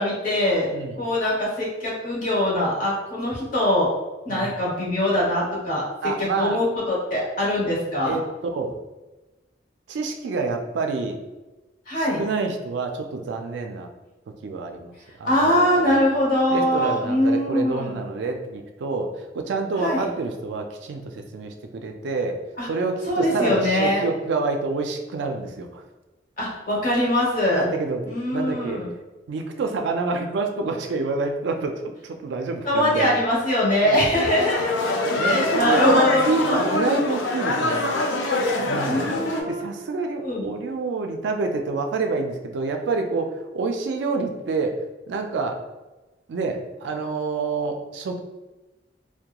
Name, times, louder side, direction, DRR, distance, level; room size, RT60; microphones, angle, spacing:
voice 1, 0.0-0.7 1.0-3.9 4.2-8.2 11.9-12.2 15.2-18.0 19.8-20.1 22.6-22.7 23.1-24.0 26.4-27.7 28.0-28.9 32.6-34.9 35.2-36.7 38.8-39.6 40.2-40.5, left 1 dB, 50° left, -6 dB, 1.0 m, -22 dB
voice 2, 6.0-6.6 8.1-8.2 8.5-8.8 9.9-11.2 12.2-13.9 14.4-14.9 15.2-16.0 16.5-25.8 27.5-28.0 28.3-28.8 29.3-33.1 33.8-34.0 35.2-37.8 38.6-39.1 39.4-45.6 46.3-48.2, right 3 dB, 70° right, 5 dB, 0.3 m, -27 dB
sound 1, 34.1-39.4, left 2 dB, 85° left, 0.4 m, -24 dB
2.8 x 2.2 x 2.3 m, 1.1 s
head